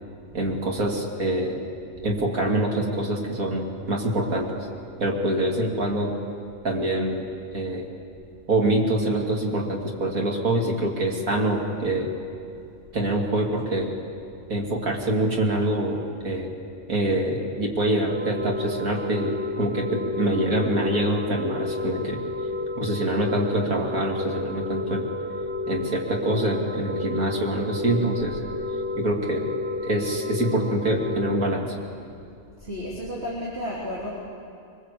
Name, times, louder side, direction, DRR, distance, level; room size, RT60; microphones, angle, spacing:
voice 1, 0.3-1.6 2.0-4.7 5.0-6.2 6.6-7.9 8.5-12.1 12.9-14.0 14.5-16.0 16.2-16.5 16.9-22.2 22.8-25.1 25.7-28.4 28.9-29.5 29.8-31.8, right 1 dB, 80° right, 0 dB, 3.1 m, -25 dB
sound 1, 18.1-31.6, left 2 dB, 20° right, 0.3 m, -31 dB
voice 2, 32.6-34.1, equal, 50° right, -7 dB, 3.8 m, -32 dB
23.5 x 20.5 x 8.5 m, 2.5 s
omnidirectional pair, 1.5 m